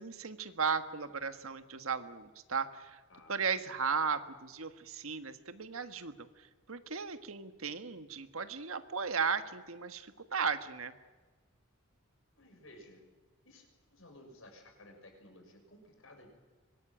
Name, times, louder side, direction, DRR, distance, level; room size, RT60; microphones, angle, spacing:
voice 1, 0.0-3.0 3.3-11.0, right 5 dB, 75° right, 10 dB, 1.5 m, -36 dB
voice 2, 3.1-3.7 12.3-13.0 13.4-16.3, left 1 dB, 65° left, 4 dB, 6.4 m, -56 dB
24.0 x 20.5 x 9.1 m, 1.4 s
head